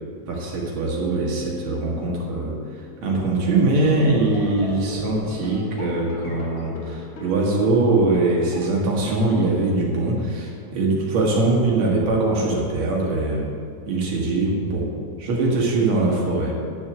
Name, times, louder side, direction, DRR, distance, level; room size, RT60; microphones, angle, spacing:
voice 1, 0.3-2.6 3.0-13.5 13.9-14.9 15.2-16.5, right 2 dB, 55° right, -2 dB, 2.6 m, -22 dB
sound 1, 0.8-3.4, right 1 dB, 75° right, 3.0 m, -37 dB
sound 2, 3.4-8.9, left 2 dB, 60° left, 1.5 m, -37 dB
10.5 x 6.9 x 6.8 m, 2.2 s
omnidirectional pair, 4.3 m